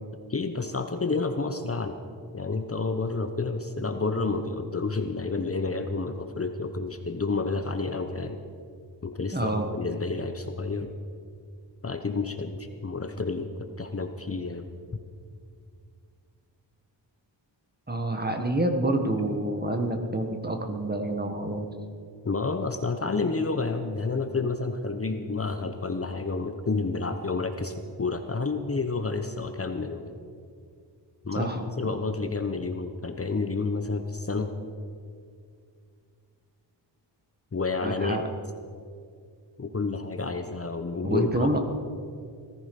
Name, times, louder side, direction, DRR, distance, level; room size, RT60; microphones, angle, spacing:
voice 1, 0.3-1.9 2.3-8.4 9.0-10.9 11.8-14.7 22.2-30.2 31.2-31.5 31.8-34.5 37.5-38.2 39.6-41.6, left 3 dB, 30° left, 7 dB, 1.0 m, -30 dB
voice 2, 9.3-9.7 17.9-21.7 31.3-31.9 37.8-38.2 41.0-41.6, right 1 dB, 20° right, 5 dB, 1.5 m, -28 dB
19.0 x 14.0 x 5.4 m, 2.2 s
wide cardioid pair, 120°, 44 cm